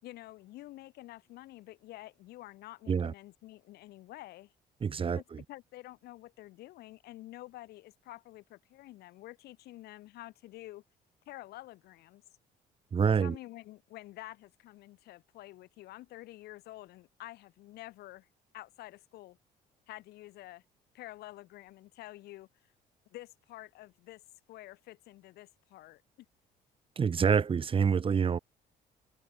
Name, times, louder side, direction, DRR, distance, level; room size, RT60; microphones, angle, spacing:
voice 1, 0.0-4.5 5.1-10.8 11.3-12.2 13.2-18.3 18.5-19.4 19.9-20.6 20.9-22.5 23.1-24.2 24.5-26.0, left 16 dB, 85° left, 5.8 m, -49 dB
voice 2, 4.8-5.4 12.9-13.4 27.0-28.4, right 6 dB, 35° right, 1.6 m, -27 dB
cardioid pair, 120°, 16 cm